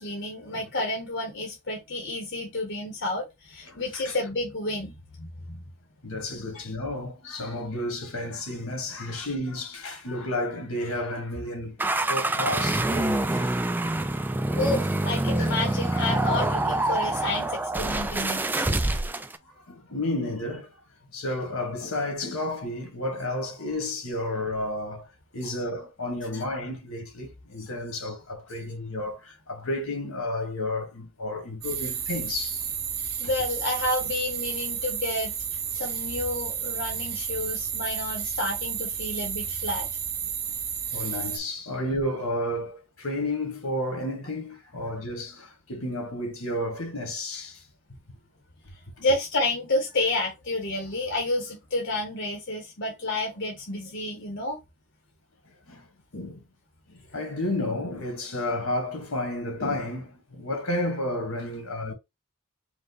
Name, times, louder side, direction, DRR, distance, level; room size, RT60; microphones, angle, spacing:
voice 1, 0.0-5.6 6.5-6.6 14.5-18.8 25.4-25.5 33.2-39.9 49.0-54.6, left 2 dB, 55° left, 1.1 m, -30 dB
voice 2, 3.7-4.2 6.0-11.8 12.1-13.6 15.9-16.0 19.5-20.7 21.1-25.1 25.3-32.7 40.9-47.6 55.7-55.9 56.1-56.4 56.9-61.9, left 1 dB, 80° left, 1.9 m, -32 dB
sound 1, 11.8-19.4, right 2 dB, 10° right, 0.3 m, -26 dB
sound 2, 31.6-41.4, right 8 dB, 45° right, 1.5 m, -32 dB
5.2 x 2.4 x 3.9 m
head